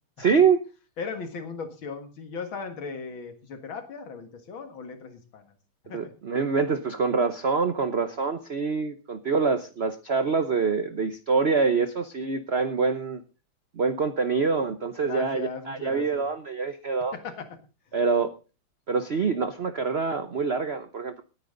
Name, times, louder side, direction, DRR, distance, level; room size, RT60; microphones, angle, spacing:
voice 1, 0.2-0.6 5.9-13.2 13.8-17.1 17.9-18.3 18.9-21.2, right 5 dB, 60° right, 10 dB, 0.6 m, -25 dB
voice 2, 1.0-5.6 5.9-6.1 15.0-16.2 17.1-17.6, left 5 dB, 70° left, 7 dB, 2.6 m, -37 dB
19.0 x 9.5 x 3.9 m, 0.33 s
omnidirectional pair, 2.3 m